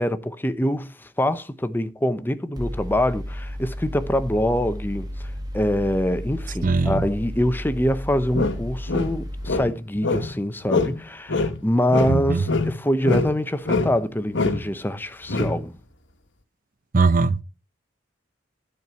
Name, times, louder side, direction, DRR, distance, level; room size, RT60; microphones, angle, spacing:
voice 1, 0.0-15.8, left 1 dB, 10° left, 0.7 m, -25 dB
Mechanical fan, 2.6-9.5, equal, 20° right, 1.8 m, -33 dB
voice 2, 6.6-7.1 12.1-12.4 16.9-17.4, right 4 dB, 45° right, 0.6 m, -20 dB
sound 1, 8.3-10.4 10.7-11.0 11.3-13.4 13.6-14.0 14.3-14.7 15.3-15.6, left 3 dB, 80° left, 1.4 m, -24 dB
12.5 x 4.6 x 6.9 m
head